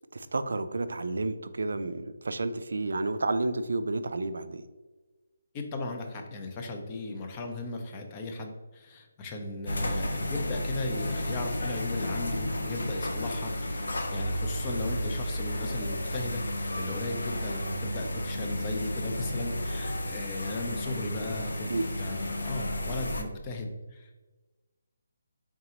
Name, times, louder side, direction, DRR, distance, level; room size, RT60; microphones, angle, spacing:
voice 1, 0.1-4.6 21.7-21.9, right 2 dB, 75° right, 11 dB, 0.3 m, -31 dB
voice 2, 5.5-16.4 16.7-24.1, left 2 dB, 25° left, 3 dB, 0.5 m, -36 dB
sound 1, 9.7-23.2, left 1 dB, 80° left, 0.6 m, -32 dB
3.9 x 3.6 x 2.9 m, 1.2 s
figure-of-eight pair, 155°, 0 cm